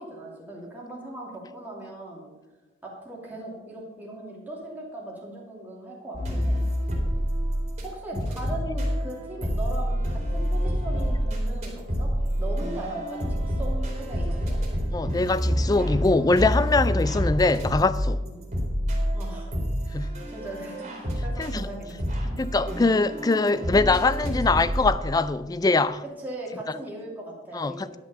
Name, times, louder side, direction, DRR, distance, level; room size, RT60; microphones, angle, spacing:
voice 1, 0.0-2.3 2.8-6.7 7.8-12.1 12.4-13.7 14.0-14.6 18.2-18.5 19.1-19.6 19.9-22.3 22.7-22.8 26.2-28.0, right 1 dB, 10° right, 2.7 m, -38 dB
sound 1, 6.1-7.8 8.1-24.9, equal, 35° right, 2.8 m, -27 dB
voice 2, 14.9-18.2 19.9-20.1 21.4-21.7 22.4-26.0 27.5-28.0, left 3 dB, 20° left, 0.3 m, -23 dB
11.0 x 6.1 x 6.8 m
head